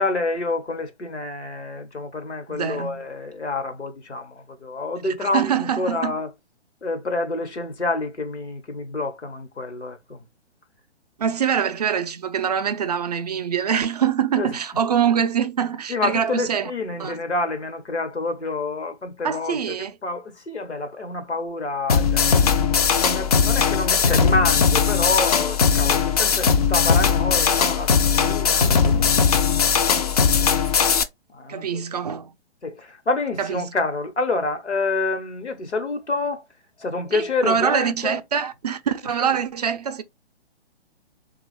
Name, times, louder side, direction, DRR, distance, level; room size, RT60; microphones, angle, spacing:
voice 1, 0.0-6.3 6.8-10.2 14.3-14.8 15.9-22.5 22.9-28.7 29.3-29.9 31.3-32.0 32.6-36.4 36.8-38.2 39.0-39.4, left 3 dB, 90° left, 1.1 m, -28 dB
voice 2, 2.5-3.1 5.0-6.2 11.2-16.7 17.0-17.2 19.2-19.9 31.5-32.3 33.4-33.7 37.1-40.0, right 8 dB, 40° right, 0.4 m, -24 dB
sound 1, 21.9-31.0, left 6 dB, 40° left, 0.4 m, -19 dB
3.5 x 2.3 x 3.2 m
figure-of-eight pair, 130°, 33 cm